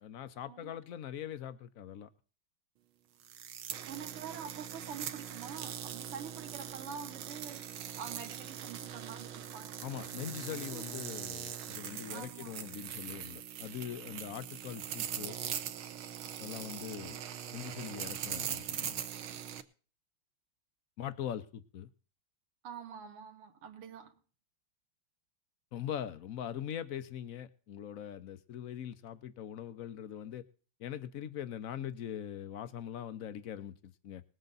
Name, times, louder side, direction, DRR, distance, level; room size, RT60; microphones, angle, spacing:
voice 1, 0.0-2.1 9.8-15.3 16.4-17.2 17.5-19.0 21.0-21.9 25.7-30.4 30.8-34.2, left 10 dB, 80° left, 12 dB, 0.7 m, -42 dB
sound 1, 3.2-19.6, right 9 dB, 70° right, 1.7 m, -41 dB
voice 2, 3.9-11.0 12.1-12.6 22.6-24.1, right 7 dB, 90° right, 4 dB, 2.3 m, -46 dB
20.0 x 8.0 x 4.0 m, 0.39 s
omnidirectional pair, 2.4 m